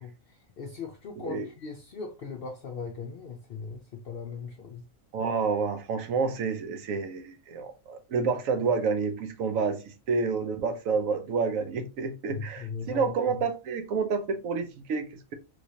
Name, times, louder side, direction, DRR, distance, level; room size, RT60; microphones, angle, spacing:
voice 1, 0.0-4.8 12.3-13.1, left 5 dB, 65° left, 0.6 m, -39 dB
voice 2, 1.2-1.5 5.1-15.3, right 5 dB, 75° right, 1.0 m, -29 dB
3.1 x 3.0 x 2.7 m
omnidirectional pair, 1.5 m